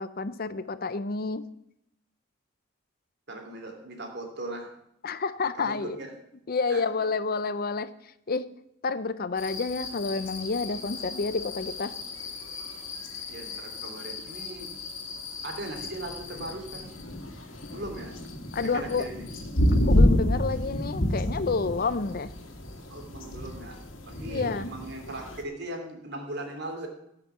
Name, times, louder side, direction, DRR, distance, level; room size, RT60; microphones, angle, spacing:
voice 1, 0.0-1.4 5.0-6.0 6.5-7.9 8.3-8.5 8.8-11.9 18.5-19.1 19.9-22.3 24.2-24.7, left 4 dB, 50° left, 14 dB, 0.6 m, -29 dB
voice 2, 3.3-4.7 5.6-6.1 6.7-7.1 13.3-14.7 15.4-16.9 17.7-18.1 18.7-19.2 22.9-23.8 24.1-26.9, right 1 dB, 55° right, 3 dB, 2.9 m, -39 dB
sound 1, 9.4-25.4, left 1 dB, 75° left, 2.0 m, -30 dB
17.0 x 6.0 x 7.1 m, 0.79 s
head